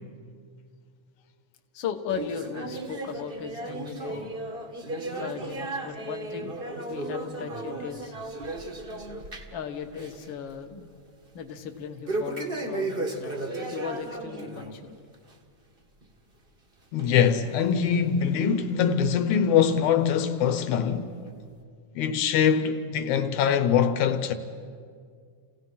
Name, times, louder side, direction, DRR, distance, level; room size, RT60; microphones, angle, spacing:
voice 1, 1.7-4.3 5.2-6.5 6.9-8.2 9.5-10.9 11.3-13.4 13.7-15.0, left 7 dB, 50° left, 1.7 m, -37 dB
sound 1, 2.1-9.6 9.9-10.3 10.6-10.7 12.1-14.7 15.1-15.3 16.0-16.1 17.0-17.1 17.9-18.0, right 2 dB, 30° right, 1.0 m, -34 dB
voice 2, 16.9-21.1 22.0-24.3, left 7 dB, 85° left, 2.4 m, -23 dB
28.5 x 17.0 x 5.7 m
omnidirectional pair, 3.3 m